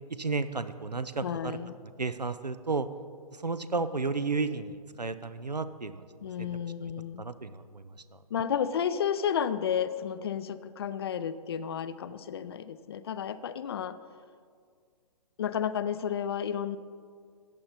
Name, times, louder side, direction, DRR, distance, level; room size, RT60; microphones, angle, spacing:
voice 1, 0.1-1.6 2.0-2.9 3.4-6.0 6.4-6.5 7.2-8.2, right 4 dB, 90° right, 13 dB, 0.6 m, -33 dB
voice 2, 1.2-1.8 6.2-7.3 8.3-14.0 15.4-16.8, left 8 dB, 40° left, 14 dB, 0.4 m, -32 dB
14.0 x 8.7 x 4.1 m, 2.1 s
figure-of-eight pair, 130°, 20 cm